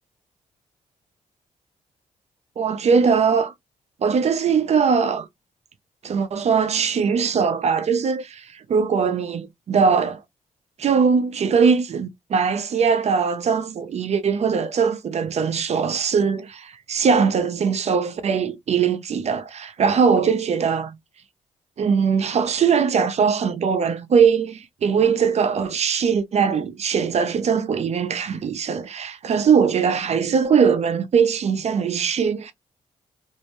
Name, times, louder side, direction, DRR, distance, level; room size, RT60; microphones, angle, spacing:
voice 1, 2.6-3.5 4.0-5.3 6.0-10.2 10.8-21.0 21.8-32.5, right 6 dB, 55° right, 0.5 m, -21 dB
2.6 x 2.1 x 2.9 m
cardioid pair, 70°, 14 cm